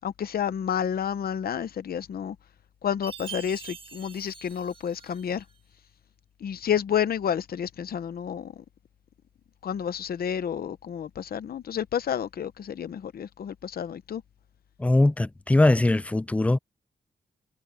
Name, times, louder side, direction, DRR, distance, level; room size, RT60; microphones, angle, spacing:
voice 1, 0.0-2.4 2.8-5.4 6.4-8.6 9.6-14.2, left 8 dB, 60° left, 0.7 m, -30 dB
Chime, 3.0-5.5, right 6 dB, 30° right, 1.5 m, -43 dB
voice 2, 14.8-16.6, left 2 dB, 5° left, 0.3 m, -21 dB
wide cardioid pair, 180°, 18 cm